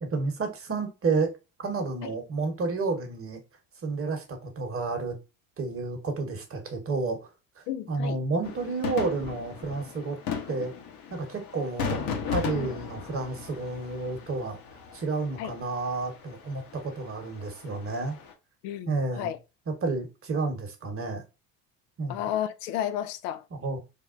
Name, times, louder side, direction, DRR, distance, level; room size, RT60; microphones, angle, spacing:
voice 1, 0.0-1.3 1.6-3.4 3.8-5.2 5.6-7.3 7.6-10.2 10.5-10.7 11.1-14.6 14.9-18.2 18.9-19.3 19.7-21.2 22.0-22.3 23.5-23.8, right 3 dB, 30° right, 1.0 m, -31 dB
voice 2, 7.7-8.2 15.4-15.5 18.6-19.4 22.1-23.4, left 11 dB, 80° left, 0.5 m, -32 dB
sound 1, 8.4-18.3, left 6 dB, 50° left, 0.8 m, -37 dB
3.5 x 2.2 x 2.5 m
hypercardioid pair, 65°, 47 cm